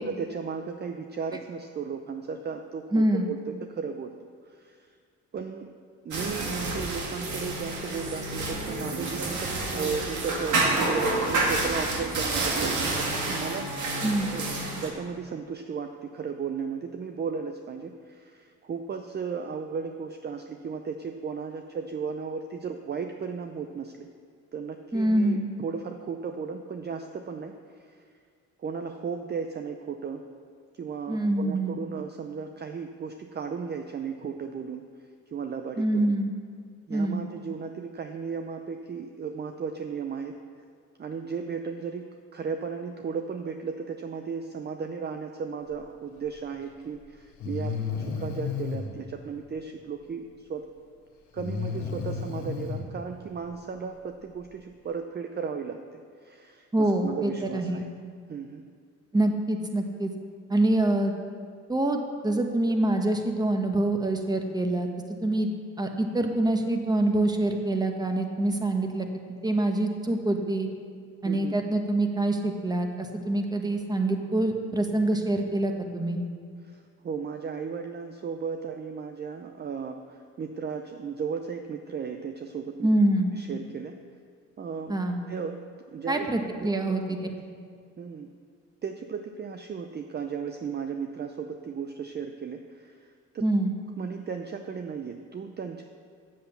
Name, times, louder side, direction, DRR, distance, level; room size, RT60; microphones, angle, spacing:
voice 1, 0.0-4.1 4.4-5.0 5.3-5.7 6.0-13.8 14.3-24.1 24.5-28.0 28.6-30.2 30.7-34.9 35.3-36.1 36.9-40.4 41.0-50.7 51.3-57.8 58.3-58.6 71.2-71.5 76.6-82.9 83.3-84.0 84.6-84.9 85.3-85.6 85.9-87.2 88.0-88.3 88.8-93.4 94.0-95.8, right 6 dB, 35° right, 6 dB, 0.6 m, -35 dB
voice 2, 2.9-3.3 14.0-14.4 24.9-25.5 31.1-31.8 35.8-36.3 36.9-37.2 56.7-57.9 59.1-60.1 60.5-61.1 61.7-64.9 65.2-65.5 65.8-69.1 69.4-70.7 71.2-76.2 82.8-83.3 84.9-85.2 86.1-87.2 93.4-93.8, right 1 dB, 15° right, 4 dB, 1.2 m, -25 dB
sound 1, 6.1-14.9, right 2 dB, 75° right, 2.1 m, -29 dB
Breathing, 46.5-46.6 47.4-48.9 51.4-52.8, left 5 dB, 90° left, 1.5 m, -32 dB
8.1 x 7.5 x 6.9 m, 2.1 s
cardioid pair, 90°, 30 cm